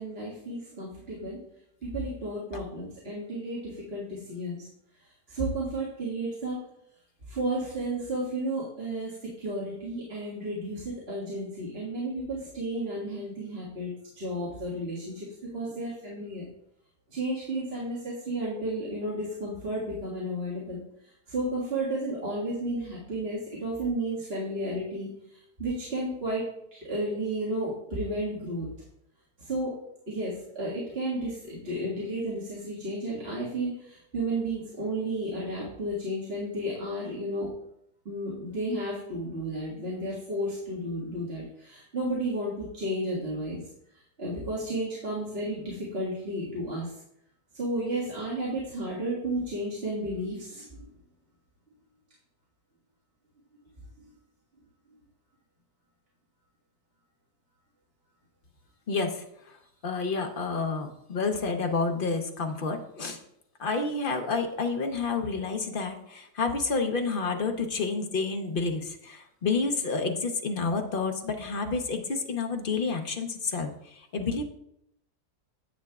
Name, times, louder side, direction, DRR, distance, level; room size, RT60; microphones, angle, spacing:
voice 1, 0.0-1.4 1.8-4.6 5.3-6.6 7.3-15.3 15.5-16.5 17.1-26.4 26.7-28.7 29.4-29.7 30.1-37.5 38.1-43.6 44.2-46.9 47.5-50.9, right 1 dB, 35° right, -8 dB, 2.1 m, -32 dB
voice 2, 58.9-59.6 59.8-63.2 63.6-74.4, left 4 dB, 45° left, 4 dB, 0.7 m, -29 dB
9.7 x 8.6 x 2.4 m, 0.76 s
omnidirectional pair, 1.8 m